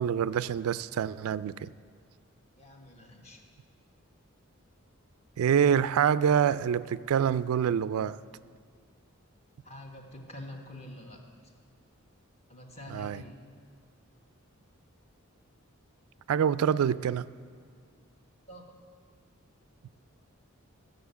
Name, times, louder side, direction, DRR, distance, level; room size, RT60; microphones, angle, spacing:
voice 1, 0.0-1.7 5.4-8.2 12.9-13.2 16.3-17.2, right 8 dB, 90° right, 17 dB, 0.3 m, -26 dB
voice 2, 2.6-3.4 9.6-11.5 12.5-13.3 18.5-18.8, left 1 dB, 30° left, 2 dB, 1.3 m, -46 dB
12.5 x 6.6 x 8.2 m, 2.1 s
head